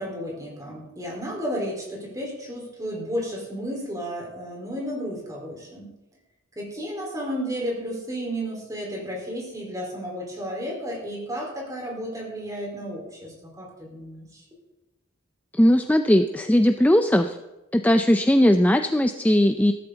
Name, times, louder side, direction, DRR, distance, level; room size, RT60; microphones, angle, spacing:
voice 1, 0.0-5.9 6.6-14.2, equal, 15° right, -2 dB, 4.4 m, -32 dB
voice 2, 15.5-17.4 17.7-19.7, left 1 dB, 10° left, 7 dB, 0.5 m, -19 dB
15.5 x 13.5 x 4.0 m, 1.0 s
head